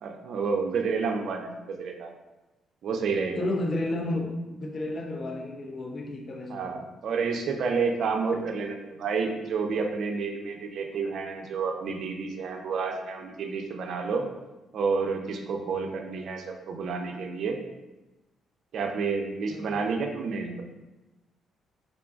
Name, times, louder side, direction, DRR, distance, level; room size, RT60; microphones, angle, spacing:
voice 1, 0.0-2.1 2.8-3.5 6.5-14.2 14.7-17.6 18.7-20.6, right 5 dB, 65° right, 4 dB, 0.5 m, -30 dB
voice 2, 3.4-6.8 19.5-19.9, left 2 dB, 45° left, 1 dB, 0.6 m, -32 dB
3.7 x 3.7 x 2.4 m, 1.1 s
cardioid pair, 90°, 0 cm